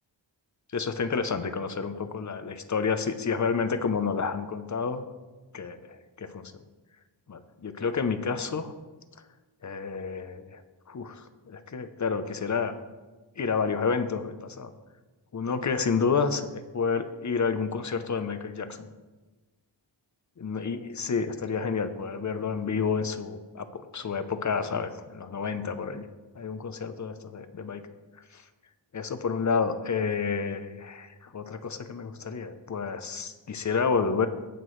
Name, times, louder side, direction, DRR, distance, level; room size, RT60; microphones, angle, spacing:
voice 1, 0.7-5.0 5.5-6.5 7.3-8.7 9.6-10.6 10.9-12.7 13.4-14.7 15.3-18.9 20.4-26.0 26.4-27.8 28.3-28.4 28.9-34.3, left 5 dB, 40° left, 10 dB, 0.7 m, -30 dB
17.0 x 6.0 x 3.2 m, 1.2 s
wide cardioid pair, 95°, 47 cm